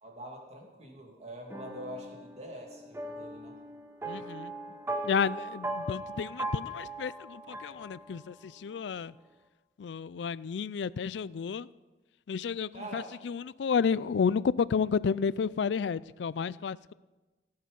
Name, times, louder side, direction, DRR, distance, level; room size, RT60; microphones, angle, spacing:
voice 1, 0.0-3.6 4.7-4.8 12.7-13.1, equal, 40° right, 2.5 m, -44 dB
sound 1, 1.5-8.5, right 2 dB, 15° right, 1.0 m, -39 dB
voice 2, 4.1-4.5 5.0-9.1 9.8-11.7 12.3-16.9, left 6 dB, 90° left, 0.4 m, -31 dB
17.5 x 8.8 x 5.4 m
head